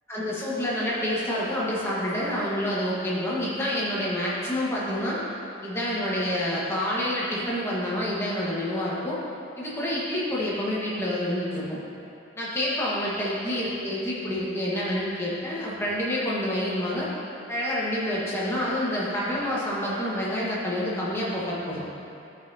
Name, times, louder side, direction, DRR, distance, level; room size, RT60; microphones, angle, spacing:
voice 1, 0.1-5.2 5.6-9.2 9.6-11.8 12.4-17.1 17.5-21.8, left 1 dB, 10° left, -7 dB, 1.6 m, -28 dB
14.0 x 5.8 x 2.9 m, 2.6 s
head